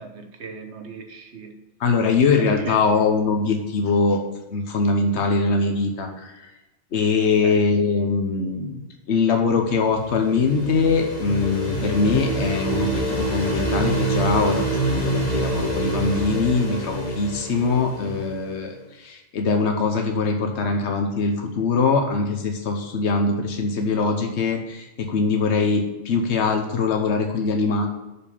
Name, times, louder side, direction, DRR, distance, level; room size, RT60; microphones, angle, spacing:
voice 1, 0.0-1.6 2.4-2.9 7.4-7.6, right 5 dB, 75° right, 5 dB, 1.4 m, -38 dB
voice 2, 1.8-4.2 4.5-6.5 6.9-27.9, left 4 dB, 80° left, 3 dB, 1.2 m, -22 dB
sound 1, 9.7-18.5, right 2 dB, 65° left, 2.1 m, -26 dB
6.6 x 5.4 x 6.9 m, 1.0 s
omnidirectional pair, 1.1 m